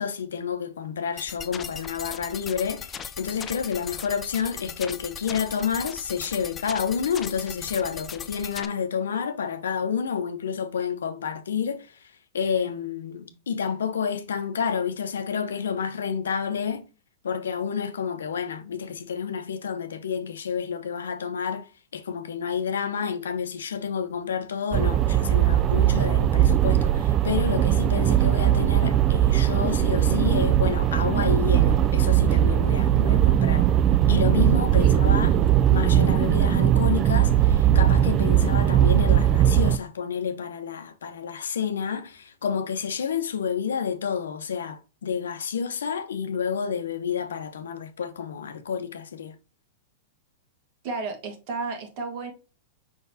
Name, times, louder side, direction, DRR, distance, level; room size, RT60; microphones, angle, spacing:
voice 1, 0.0-16.9 17.2-21.7 21.9-33.7 34.1-35.4 35.7-49.3, left 7 dB, 80° left, 0.7 m, -29 dB
sound 1, 1.2-8.7, left 7 dB, 25° left, 0.5 m, -38 dB
sound 2, 24.7-39.8, right 11 dB, 35° right, 0.3 m, -20 dB
voice 2, 50.8-52.3, right 3 dB, 50° right, 1.5 m, -32 dB
5.2 x 3.8 x 2.7 m
hypercardioid pair, 105°, 0 cm